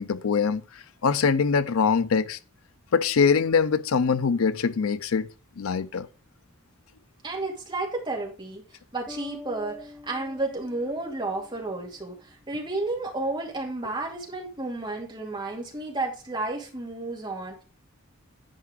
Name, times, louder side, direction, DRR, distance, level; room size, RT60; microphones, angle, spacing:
voice 1, 0.0-2.4 2.9-5.3 5.6-6.1, left 5 dB, 90° left, 0.5 m, -23 dB
voice 2, 7.2-8.6 8.9-17.6, right 2 dB, 20° right, 2.3 m, -32 dB
Bass guitar, 9.1-12.6, left 3 dB, 5° left, 1.9 m, -47 dB
10.0 x 4.8 x 4.8 m
head